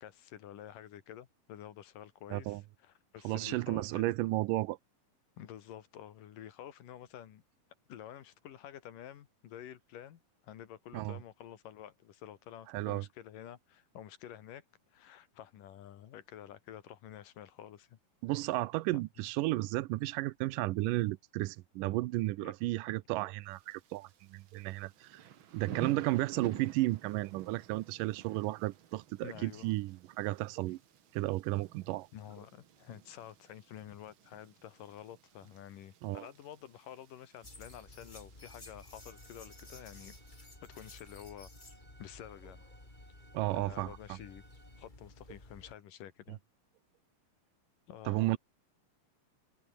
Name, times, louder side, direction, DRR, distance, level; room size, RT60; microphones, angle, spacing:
voice 1, 0.0-4.0 5.4-7.4 7.9-18.0 19.2-19.3 22.4-22.5 29.2-29.7 32.1-40.1 40.6-41.5 42.0-42.7 43.5-44.4 44.8-46.4 47.9-48.4, left 10 dB, 80° left, 3.3 m, -50 dB
voice 2, 2.3-2.6 3.2-4.8 10.9-11.2 12.7-13.1 18.2-25.2 25.5-30.8 31.1-32.1 36.0-36.3 43.3-44.2 48.1-48.4, right 19 dB, 90° right, 2.3 m, -33 dB
Thunder / Rain, 23.5-40.4, right 9 dB, 55° right, 1.6 m, -51 dB
sound 1, 37.4-45.7, left 2 dB, 15° left, 3.9 m, -54 dB
Bowed string instrument, 38.9-44.9, right 2 dB, 20° right, 4.2 m, -64 dB
omnidirectional pair, 3.8 m